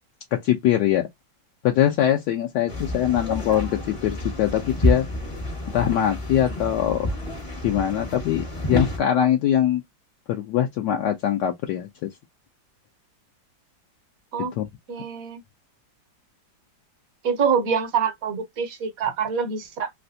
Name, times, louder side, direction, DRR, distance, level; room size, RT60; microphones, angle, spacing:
voice 1, 0.3-1.1 1.6-5.1 5.7-7.1 7.6-9.8 10.3-12.1 14.5-14.7, left 11 dB, 75° left, 1.1 m, -22 dB
sound 1, 2.7-9.0, left 1 dB, 30° left, 0.6 m, -28 dB
voice 2, 14.9-15.4 17.2-19.9, right 6 dB, 55° right, 1.1 m, -25 dB
3.3 x 2.6 x 2.6 m
omnidirectional pair, 2.0 m